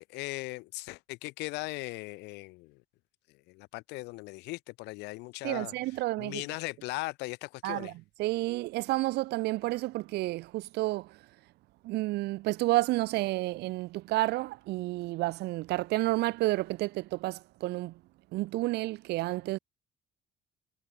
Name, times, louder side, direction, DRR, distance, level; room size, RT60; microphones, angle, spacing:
voice 1, 0.0-2.8 3.5-5.7 6.2-7.9, left 22 dB, 90° left, 0.6 m, -38 dB
voice 2, 5.4-6.4 7.6-7.9 8.2-11.2 11.8-18.0 18.3-19.6, right 19 dB, 80° right, 0.7 m, -30 dB
cardioid pair, 110°, 17 cm